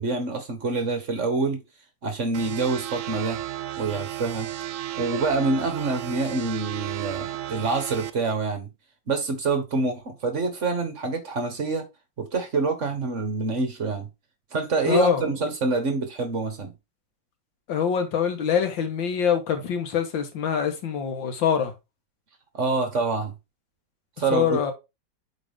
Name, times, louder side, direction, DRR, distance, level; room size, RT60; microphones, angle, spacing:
voice 1, 0.0-1.6 2.0-3.4 3.8-4.5 5.0-8.7 9.1-11.9 12.2-14.1 14.5-16.7 22.5-23.3 24.2-24.7, right 3 dB, 45° right, 1.4 m, -26 dB
sound 1, 2.3-8.1, right 14 dB, 75° right, 0.7 m, -33 dB
voice 2, 14.9-15.3 17.7-21.7 24.3-24.7, left 7 dB, 90° left, 2.0 m, -24 dB
8.3 x 4.0 x 3.5 m
omnidirectional pair, 2.0 m